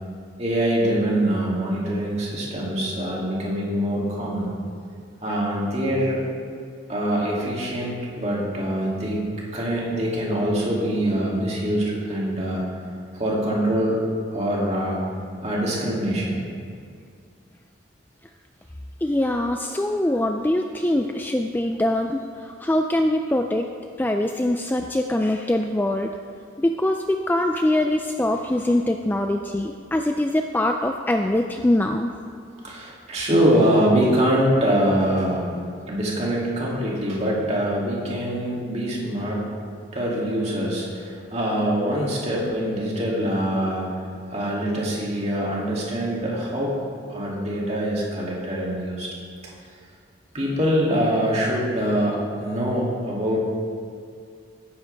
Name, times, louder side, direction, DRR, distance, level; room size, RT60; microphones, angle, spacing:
voice 1, 0.4-4.6 5.2-6.2 6.9-9.3 9.5-12.7 13.1-14.0 14.3-15.0 15.4-16.5 32.6-35.6 35.9-39.5 39.9-43.9 44.3-46.8 47.1-49.1 50.3-53.4, equal, 35° right, -5 dB, 2.7 m, -24 dB
voice 2, 19.0-23.7 24.0-26.1 26.6-32.1, left 1 dB, 10° left, 4 dB, 0.3 m, -23 dB
17.0 x 10.0 x 3.5 m, 2.3 s
head